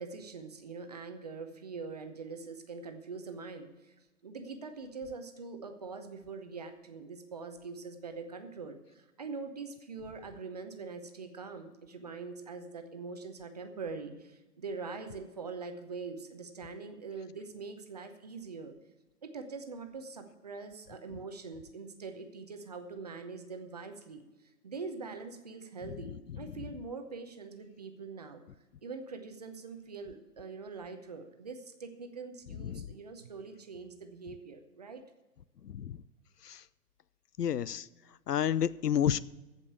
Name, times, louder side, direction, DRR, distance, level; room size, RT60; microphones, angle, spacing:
voice 1, 0.0-3.9 4.2-18.7 19.2-28.4 28.8-35.0, right 4 dB, 25° right, 6 dB, 0.7 m, -43 dB
voice 2, 26.0-26.4 32.6-32.9 35.6-36.0 36.4-36.6 37.4-37.9 38.3-39.2, left 9 dB, 75° left, 20 dB, 0.6 m, -31 dB
15.0 x 5.3 x 8.1 m, 1.1 s
hypercardioid pair, 155°, 47 cm